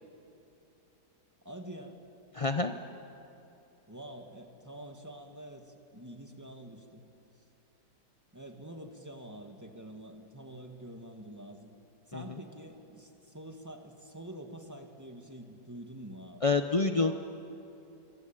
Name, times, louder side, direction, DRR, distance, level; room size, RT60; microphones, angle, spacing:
voice 1, 1.4-2.0 3.9-7.0 8.3-11.7 12.1-16.4, right 1 dB, 10° right, 3 dB, 2.0 m, -46 dB
voice 2, 2.3-2.7 12.1-12.2 16.4-17.1, left 3 dB, 45° left, 7 dB, 0.4 m, -27 dB
26.0 x 22.5 x 9.1 m, 2.9 s
omnidirectional pair, 1.8 m